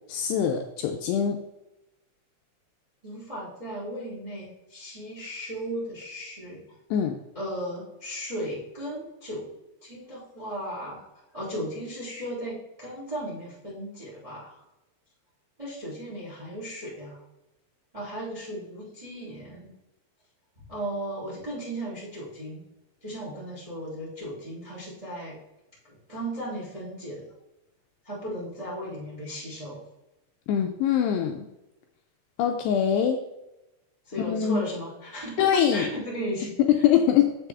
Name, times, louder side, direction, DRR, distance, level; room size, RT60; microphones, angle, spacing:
voice 1, 0.1-1.4 6.9-7.2 30.5-31.4 32.4-33.2 34.2-34.6 35.4-35.9 36.7-37.4, left 9 dB, 85° left, 4 dB, 2.5 m, -23 dB
voice 2, 3.0-6.6 7.3-9.5 9.8-11.0 11.3-14.5 15.6-17.2 17.9-19.7 20.5-22.6 23.0-25.4 25.8-27.2 28.0-29.8 34.0-36.8, equal, 10° right, -5 dB, 1.6 m, -36 dB
7.5 x 7.3 x 3.4 m, 0.93 s
omnidirectional pair, 5.2 m